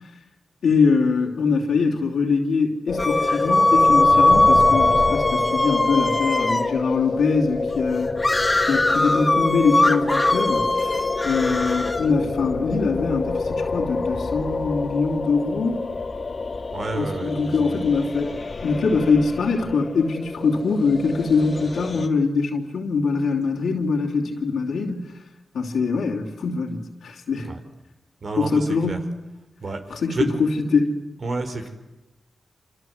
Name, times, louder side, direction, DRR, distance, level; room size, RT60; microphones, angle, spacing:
voice 1, 0.6-8.2 8.6-15.9 16.9-18.4 18.6-25.1 25.5-27.5 28.4-29.0 29.9-30.2 30.7-31.0, left 4 dB, 85° left, -2 dB, 3.2 m, -23 dB
sound 1, 2.9-22.1, left 3 dB, 50° left, 1.9 m, -28 dB
sound 2, 3.0-6.7 8.2-12.1, left 2 dB, 20° left, 2.0 m, -20 dB
voice 2, 16.7-18.0 27.4-27.6 28.2-29.0 29.6-30.3 31.2-31.7, right 3 dB, 60° right, 6 dB, 4.5 m, -30 dB
27.0 x 27.0 x 8.0 m, 1.0 s
cardioid pair, 60°, 0 cm